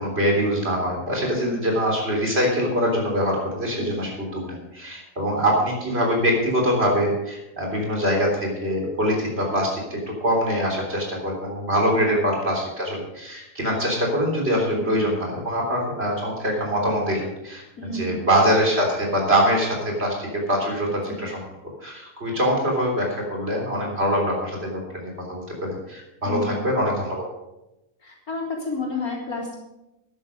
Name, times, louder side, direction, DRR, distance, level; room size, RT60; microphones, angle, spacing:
voice 1, 0.0-17.6 17.9-21.4 21.8-27.2, equal, 40° right, 0 dB, 3.9 m, -24 dB
voice 2, 1.3-1.7 3.8-3.9 11.9-12.1 14.7-15.0 17.8-18.2 21.1-21.2 26.2-26.6 28.0-29.5, left 2 dB, 70° left, -2 dB, 4.0 m, -31 dB
13.0 x 10.5 x 5.3 m, 0.92 s
omnidirectional pair, 1.6 m